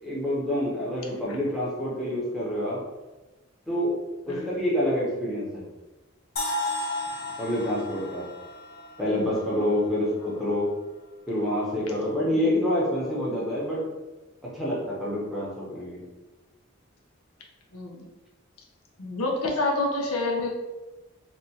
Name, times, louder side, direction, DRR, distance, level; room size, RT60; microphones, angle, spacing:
voice 1, 0.0-2.8 3.7-3.9 4.3-5.6 7.4-8.2 9.0-10.7 11.3-13.8 14.5-16.0, left 1 dB, ahead, -7 dB, 0.7 m, -27 dB
sound 1, 6.4-10.3, left 2 dB, 45° left, 0.5 m, -34 dB
voice 2, 17.7-18.1 19.0-20.5, left 2 dB, 90° left, 0 dB, 0.6 m, -28 dB
3.4 x 2.4 x 2.8 m, 1.1 s
head